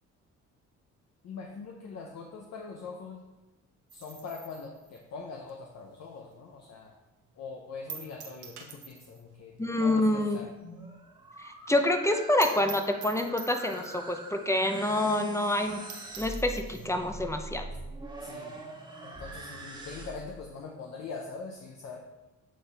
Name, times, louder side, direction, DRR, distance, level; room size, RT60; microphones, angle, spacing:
voice 1, 1.2-3.2 3.9-6.9 7.3-10.5 18.2-18.6 19.0-22.0, left 4 dB, 60° left, 1 dB, 0.8 m, -42 dB
sound 1, 3.9-6.5 6.9-7.0 7.3-7.4 7.9-9.3 9.6-9.7 10.0-10.1 10.5-10.6 10.8-10.9 11.2-11.3 11.6-11.7 12.0-12.1 12.4-14.0 14.7-14.8 15.2-15.3 15.6-15.7 15.9-16.9, right 7 dB, 75° right, 1.0 m, -45 dB
voice 2, 9.6-10.4 11.7-15.8 16.2-17.6, left 1 dB, 10° left, 6 dB, 0.6 m, -27 dB
sound 2, 10.4-20.4, right 2 dB, 15° right, 1.5 m, -44 dB
7.7 x 4.1 x 3.4 m, 1.1 s
cardioid pair, 90°, 30 cm